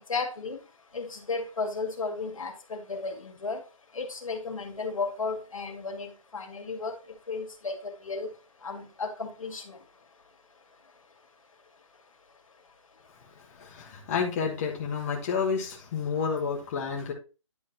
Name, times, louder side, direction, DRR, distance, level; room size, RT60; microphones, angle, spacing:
voice 1, 0.1-0.6 0.9-3.6 3.9-6.9 7.3-8.3 8.6-9.8, left 4 dB, 80° left, 4 dB, 2.2 m, -34 dB
voice 2, 13.6-17.1, left 6 dB, 30° left, -1 dB, 1.5 m, -30 dB
10.5 x 4.1 x 4.3 m, 0.33 s
hypercardioid pair, 160°, 17 cm